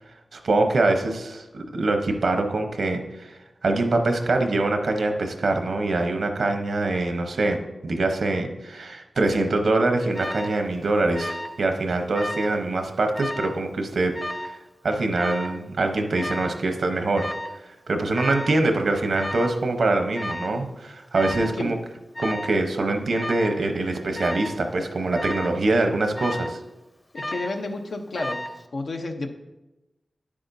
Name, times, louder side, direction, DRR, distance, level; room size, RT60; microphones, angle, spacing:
voice 1, 0.3-14.2 14.8-17.3 17.9-21.8 22.2-26.6, right 2 dB, 80° right, 5 dB, 0.8 m, -24 dB
Alarm, 10.1-10.6 11.1-11.6 11.9-12.6 13.1-13.6 14.1-14.6 15.2-15.6 16.2-16.6 17.2-17.6 18.2-18.6 19.2-19.6 20.2-20.6 21.1-21.6 22.1-22.6 23.1-23.6 24.1-24.6 25.1-25.6 26.2-26.6 27.2-27.6 28.2-28.6, left 1 dB, 35° left, 0.9 m, -33 dB
voice 2, 21.4-21.8 27.1-28.4 28.7-29.3, left 2 dB, 80° left, 3 dB, 0.8 m, -31 dB
9.7 x 8.5 x 2.7 m, 1.0 s
cardioid pair, 45°, 0 cm